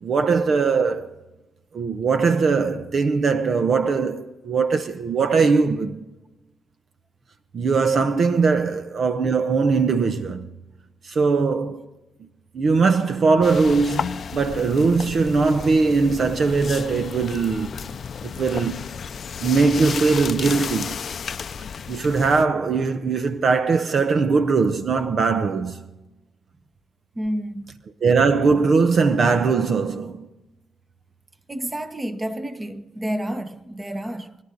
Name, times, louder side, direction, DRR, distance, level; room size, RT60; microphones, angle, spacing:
voice 1, 0.0-1.1 1.7-6.0 7.5-10.5 11.0-11.8 12.5-17.7 18.2-18.8 19.4-21.0 21.9-25.8 28.0-30.3, right 4 dB, 55° right, 0.8 m, -20 dB
sound 1, 13.4-22.4, left 6 dB, 55° left, 0.5 m, -33 dB
voice 2, 27.1-27.8 31.5-34.4, equal, 20° right, 1.1 m, -30 dB
25.5 x 11.5 x 3.9 m
cardioid pair, 75°, 0 cm